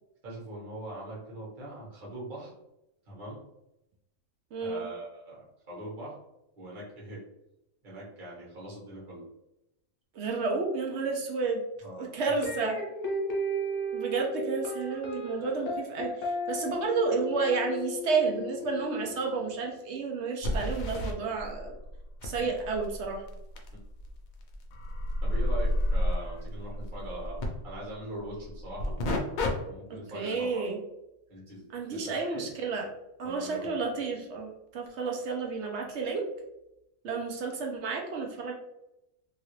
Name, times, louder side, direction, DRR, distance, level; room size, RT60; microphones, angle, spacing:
voice 1, 0.2-2.5 3.1-3.4 4.6-6.2 6.5-7.2 7.8-9.2 11.8-12.1 22.4-22.5 23.7-23.8 25.2-29.0 29.6-30.6 31.3-31.6 31.9-32.5 33.2-33.7, right 1 dB, 40° right, -6 dB, 1.2 m, -41 dB
voice 2, 4.5-4.9 10.1-11.6 12.0-12.8 13.9-21.8 22.2-23.3 29.9-30.8 31.7-32.9 33.2-36.3 37.0-38.5, right 4 dB, 65° right, 1 dB, 0.8 m, -31 dB
sound 1, 12.4-19.5, equal, 50° left, 0.8 m, -35 dB
sound 2, 18.6-18.7 19.0-19.1 20.4-21.1 22.2-27.5 28.8-29.5 30.0-30.2 34.9-35.0 35.9-36.0, left 1 dB, 70° left, 0.4 m, -35 dB
sound 3, 21.4-24.4 24.7-28.9, left 1 dB, 85° left, 1.0 m, -32 dB
2.8 x 2.7 x 3.0 m, 0.88 s
omnidirectional pair, 1.4 m